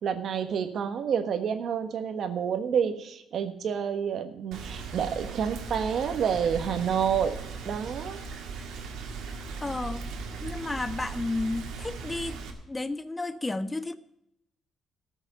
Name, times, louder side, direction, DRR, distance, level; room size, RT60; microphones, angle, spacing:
voice 1, 0.0-7.4 7.6-8.2, right 7 dB, 65° right, 8 dB, 1.4 m, -29 dB
Rain, 4.5-12.5, right 4 dB, 85° right, 1.9 m, -38 dB
voice 2, 9.6-10.0 10.4-12.4 12.7-14.0, left 2 dB, 15° left, 13 dB, 0.6 m, -32 dB
13.5 x 6.4 x 9.0 m, 0.83 s
cardioid pair, 90°, 0 cm